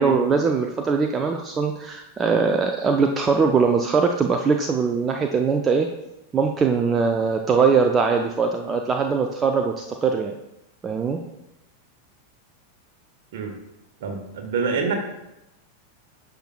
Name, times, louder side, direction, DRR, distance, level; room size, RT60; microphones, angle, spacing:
voice 1, 0.0-5.9 6.3-10.4 10.8-11.2, right 5 dB, 20° right, 4 dB, 0.5 m, -21 dB
voice 2, 14.0-14.9, right 4 dB, 55° right, 3 dB, 1.4 m, -26 dB
10.0 x 5.9 x 2.3 m, 0.91 s
figure-of-eight pair, 90°, 0 cm